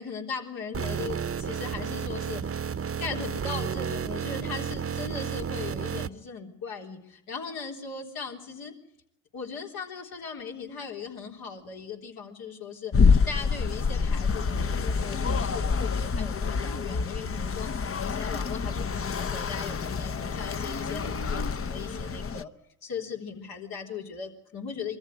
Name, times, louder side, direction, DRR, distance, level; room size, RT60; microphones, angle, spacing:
voice 1, 0.0-2.6 3.0-8.7 9.3-22.5 22.8-25.0, left 5 dB, 75° left, 1 dB, 3.8 m, -38 dB
sound 1, 0.7-6.1, right 7 dB, 40° right, 0.9 m, -32 dB
sound 2, 12.9-22.4, left 5 dB, 35° left, 0.9 m, -27 dB
23.0 x 14.5 x 9.3 m, 0.80 s
supercardioid pair, 50°, 36 cm